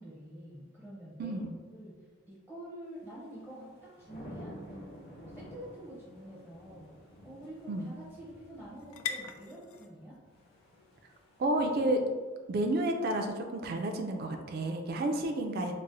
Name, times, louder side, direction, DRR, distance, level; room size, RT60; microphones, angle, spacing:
voice 1, 0.0-1.4 1.7-1.9 2.3-6.9 7.2-10.2 15.0-15.3, equal, 10° left, -8 dB, 0.6 m, -47 dB
voice 2, 1.2-1.5 7.7-7.9 11.4-12.0 12.5-15.7, right 1 dB, 50° right, 4 dB, 0.3 m, -31 dB
sound 1, 3.0-9.3 10.3-11.9, equal, 50° left, 0.7 m, -51 dB
sound 2, 5.9-13.3, left 7 dB, 90° left, 0.3 m, -47 dB
4.0 x 2.0 x 2.6 m, 1.5 s
head